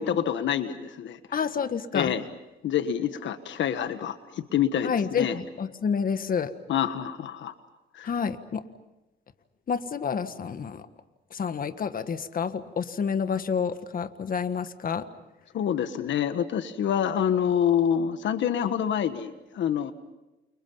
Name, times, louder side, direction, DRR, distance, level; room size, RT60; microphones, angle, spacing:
voice 1, 0.0-1.2 1.9-2.2 2.6-5.3 6.7-7.5 7.9-8.1 15.5-19.9, left 9 dB, 70° left, 10 dB, 1.5 m, -27 dB
voice 2, 1.3-2.1 4.8-6.5 8.0-8.7 9.7-10.9 11.3-15.1, left 6 dB, 45° left, 10 dB, 1.6 m, -29 dB
29.5 x 28.5 x 5.6 m, 1.0 s
cardioid pair, 90°, 20 cm